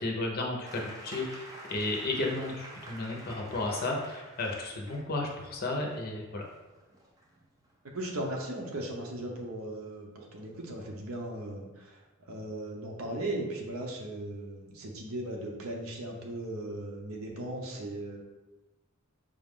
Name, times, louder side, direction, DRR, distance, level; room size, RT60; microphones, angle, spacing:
voice 1, 0.0-6.4, left 2 dB, 45° left, 0 dB, 0.7 m, -33 dB
sound 1, 0.7-8.2 9.4-9.5, right 1 dB, 15° right, 0.6 m, -49 dB
voice 2, 7.9-12.0 12.3-18.2, right 1 dB, 75° right, 0 dB, 0.8 m, -37 dB
5.2 x 2.5 x 3.6 m, 1.1 s
head